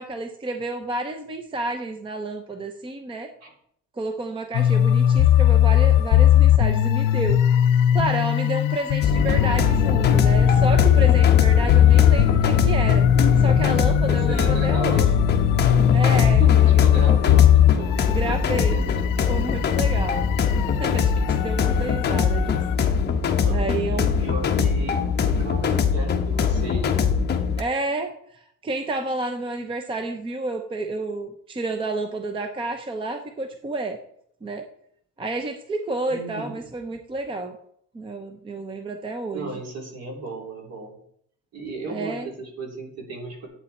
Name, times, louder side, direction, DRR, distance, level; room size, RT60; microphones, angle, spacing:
voice 1, 0.0-3.3 4.0-7.4 7.9-13.0 13.4-15.1 15.9-17.3 18.1-18.8 19.3-20.3 20.8-22.6 23.5-24.2 27.6-34.0 34.4-34.7 35.2-37.6 37.9-39.5 41.9-42.3, right 2 dB, 15° right, 6 dB, 0.7 m, -30 dB
sound 1, 4.5-22.7, left 11 dB, 85° left, 0.8 m, -19 dB
sound 2, 9.0-27.6, left 6 dB, 30° left, 1.0 m, -22 dB
voice 2, 11.8-12.3 14.1-15.4 16.4-18.0 18.7-19.3 20.1-20.2 23.4-27.2 36.1-36.5 39.3-41.0 41.5-43.5, right 2 dB, 50° right, 1 dB, 3.5 m, -35 dB
11.5 x 8.6 x 4.2 m, 0.67 s
cardioid pair, 175°, 32 cm